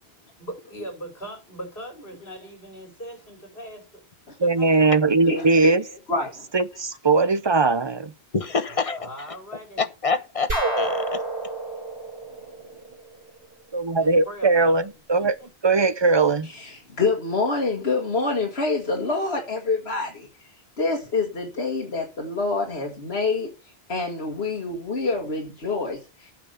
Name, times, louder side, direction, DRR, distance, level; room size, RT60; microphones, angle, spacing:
voice 1, 0.4-4.0 4.4-4.8 8.7-9.8 12.4-12.5 13.9-14.9 15.2-15.5, right 1 dB, 60° left, 5.8 m, -40 dB
voice 2, 4.4-5.8 6.5-8.1 13.7-15.3 15.6-16.5, right 3 dB, 30° right, 0.7 m, -20 dB
voice 3, 5.2-6.5 16.4-26.3, left 3 dB, 80° left, 2.2 m, -27 dB
voice 4, 8.3-9.0 9.8-11.2, left 4 dB, 35° left, 1.0 m, -26 dB
sound 1, 10.5-13.3, right 2 dB, 70° right, 4.0 m, -28 dB
9.1 x 6.1 x 6.7 m
omnidirectional pair, 1.1 m